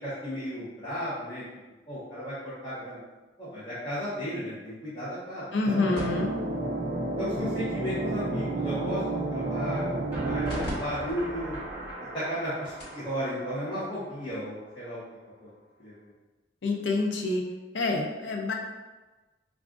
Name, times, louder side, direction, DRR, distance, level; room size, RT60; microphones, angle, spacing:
voice 1, 0.0-1.4 1.9-3.0 3.4-5.5 5.9-6.1 7.2-9.0 9.3-11.6 12.1-15.0 15.4-15.5 15.8-16.1, equal, 25° left, -12 dB, 0.8 m, -34 dB
voice 2, 5.5-6.4 16.6-17.5 17.7-18.5, left 3 dB, 85° left, 1 dB, 0.5 m, -27 dB
sound 1, 5.7-10.7, right 2 dB, 30° right, 0.4 m, -30 dB
sound 2, 5.9-10.7 11.1-11.2 11.8-11.9 12.5-12.6 12.8-13.1 14.3-14.4, equal, 65° left, 1.4 m, -43 dB
sound 3, 10.1-15.0, right 1 dB, 10° right, 1.3 m, -41 dB
4.9 x 2.4 x 2.5 m, 1.2 s
head